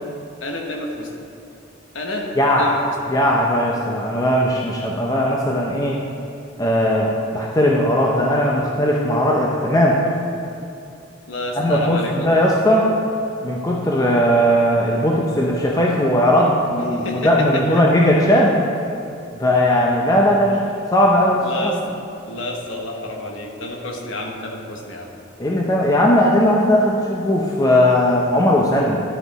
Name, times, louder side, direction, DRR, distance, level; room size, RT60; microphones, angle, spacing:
voice 1, 0.4-1.2 1.9-2.3 2.6-3.2 11.3-12.4 16.9-17.8 21.4-21.8 22.3-25.1, left 1 dB, 80° left, 1 dB, 1.1 m, -29 dB
voice 2, 2.4-2.7 3.1-6.0 6.6-10.0 11.6-12.9 13.4-18.6 19.4-21.9 25.4-29.0, equal, 20° left, -2 dB, 0.6 m, -18 dB
11.0 x 5.7 x 4.1 m, 2.7 s
head